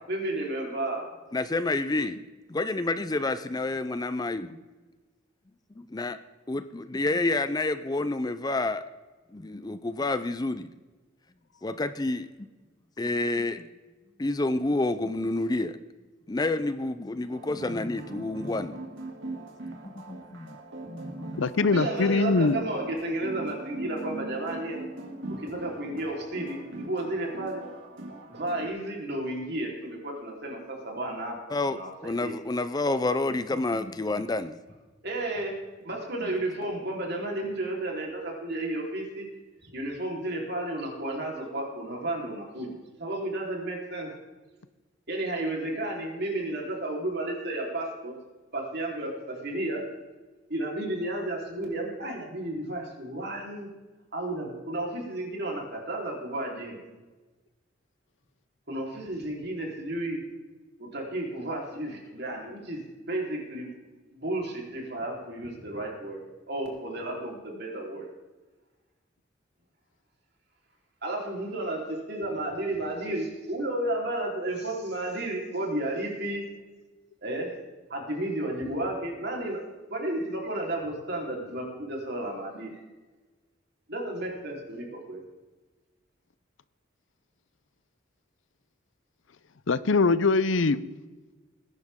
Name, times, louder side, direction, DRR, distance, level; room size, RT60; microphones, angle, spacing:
voice 1, 0.1-1.1 21.6-24.8 25.4-27.6 28.3-31.4 31.7-32.3 35.0-35.6 35.8-39.3 39.6-44.1 45.1-48.1 48.5-49.8 50.5-53.7 54.1-56.8 58.7-60.2 60.8-63.7 64.1-66.2 66.5-68.1 71.0-76.4 77.2-77.5 77.9-79.6 79.9-82.8 83.9-85.2, right 1 dB, 55° right, -1 dB, 3.9 m, -32 dB
voice 2, 1.3-2.2 2.5-4.6 5.8-6.2 6.5-8.8 9.3-10.7 11.6-12.5 13.0-13.6 14.2-15.8 16.3-18.8 19.8-20.6 20.9-21.4 31.5-34.6, left 2 dB, 20° left, 12 dB, 0.5 m, -29 dB
sound 1, 17.3-28.7, right 2 dB, 75° right, 2.5 m, -40 dB
voice 3, 21.4-22.6 89.7-90.8, left 3 dB, 75° left, 16 dB, 0.6 m, -22 dB
20.5 x 10.5 x 3.7 m, 1.2 s
head